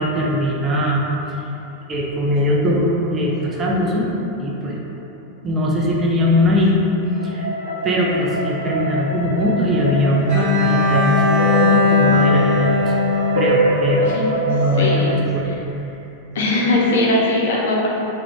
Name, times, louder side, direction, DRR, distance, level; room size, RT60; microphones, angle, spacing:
voice 1, 0.0-1.4 1.9-4.1 4.4-4.8 5.4-6.8 7.2-7.5 7.8-13.0 13.3-14.1 14.5-15.5 15.8-15.9, left 1 dB, 20° right, -3 dB, 0.4 m, -20 dB
sound 1, 2.0-4.8 7.2-15.1, right 1 dB, 85° right, 0.5 m, -25 dB
Bowed string instrument, 10.3-14.3, left 4 dB, 40° right, 0.8 m, -19 dB
voice 2, 14.8-15.2 16.3-17.9, left 2 dB, 60° left, -3 dB, 0.4 m, -19 dB
2.3 x 2.1 x 3.5 m, 3.0 s
figure-of-eight pair, 90°, 0 cm